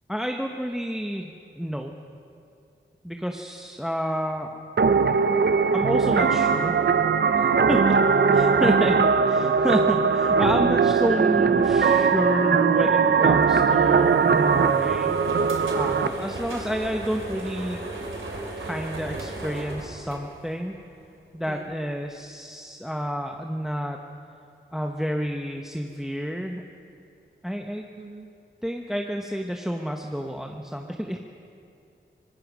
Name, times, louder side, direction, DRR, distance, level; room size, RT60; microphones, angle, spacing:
voice 1, 0.1-1.9 3.0-4.6 5.7-6.8 7.4-8.0 8.3-17.8 18.6-20.8 21.3-24.0 24.7-26.6 27.4-27.8 28.6-31.2, equal, ahead, 3 dB, 1.1 m, -30 dB
sound 1, 4.8-16.1, right 5 dB, 60° right, 0.8 m, -20 dB
voice 2, 9.5-10.1 21.5-21.7 24.8-24.9 28.0-28.3, right 3 dB, 30° right, 5 dB, 1.6 m, -46 dB
sound 2, 13.5-20.8, right 2 dB, 85° right, 3.3 m, -36 dB
25.0 x 20.5 x 6.2 m, 2.5 s
wide cardioid pair, 110°, 20 cm